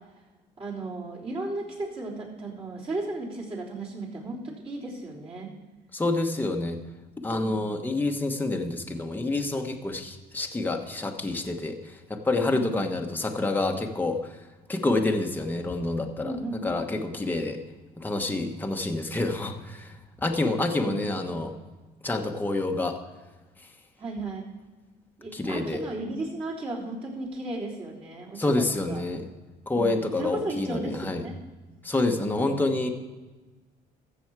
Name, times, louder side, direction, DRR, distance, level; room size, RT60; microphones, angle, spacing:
voice 1, 0.6-5.5 12.3-12.8 16.2-16.7 20.8-21.1 24.0-24.4 25.2-29.0 29.7-31.4 32.2-32.5, right 2 dB, 35° right, -4 dB, 3.6 m, -35 dB
voice 2, 5.9-6.8 7.2-14.2 14.7-16.3 16.6-17.6 18.0-21.5 22.0-23.0 25.3-25.8 28.4-29.2 29.7-31.2 31.8-32.9, left 2 dB, 10° left, 3 dB, 1.2 m, -28 dB
14.0 x 7.1 x 4.7 m, 1.2 s
cardioid pair, 110°, 17 cm